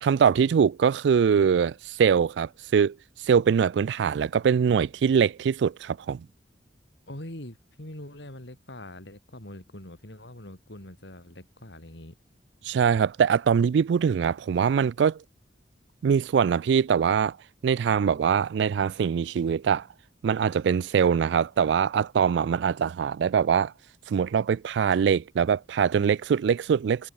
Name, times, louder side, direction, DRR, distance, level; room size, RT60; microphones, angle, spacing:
voice 1, 0.0-3.0 3.3-6.3 12.6-15.2 16.0-17.4 17.6-19.9 20.2-23.7 24.1-27.1, right 7 dB, 70° right, 0.3 m, -23 dB
voice 2, 7.1-12.2, left 1 dB, 70° left, 4.8 m, -43 dB
head